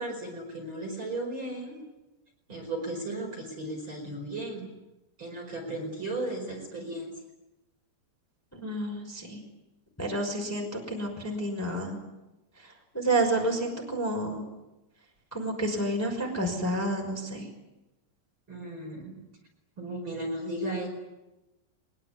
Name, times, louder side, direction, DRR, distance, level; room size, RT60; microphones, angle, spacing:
voice 1, 0.0-1.8 2.5-4.7 5.2-7.2 18.5-19.2 19.8-20.9, right 1 dB, 25° right, 1 dB, 5.3 m, -35 dB
voice 2, 8.5-9.4 10.0-12.0 12.6-14.4 15.3-17.5, right 1 dB, 5° left, 1 dB, 5.2 m, -30 dB
23.5 x 21.5 x 9.8 m, 1.0 s
omnidirectional pair, 5.4 m